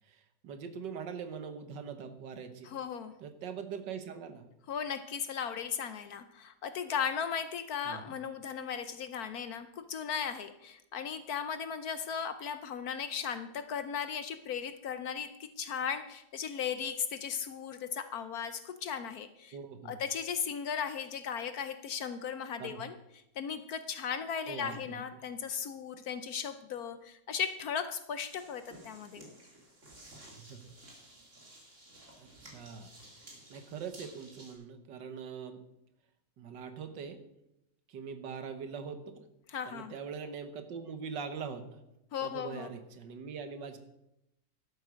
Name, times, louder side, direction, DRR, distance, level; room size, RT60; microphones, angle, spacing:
voice 1, 0.1-2.7 3.2-4.5 7.9-8.1 19.5-20.0 22.6-22.8 24.5-25.0 30.3-30.6 32.2-32.9 33.5-35.6 36.4-37.2 37.9-39.3 39.7-41.8 42.2-43.8, right 6 dB, 70° right, 8 dB, 1.7 m, -42 dB
voice 2, 2.6-3.1 4.7-19.6 19.8-23.0 23.4-29.2 39.5-39.9 42.1-42.7, left 7 dB, 65° left, 11 dB, 1.0 m, -37 dB
sound 1, 28.3-34.5, right 1 dB, 40° right, 3.1 m, -54 dB
12.0 x 8.0 x 6.2 m, 0.85 s
omnidirectional pair, 2.0 m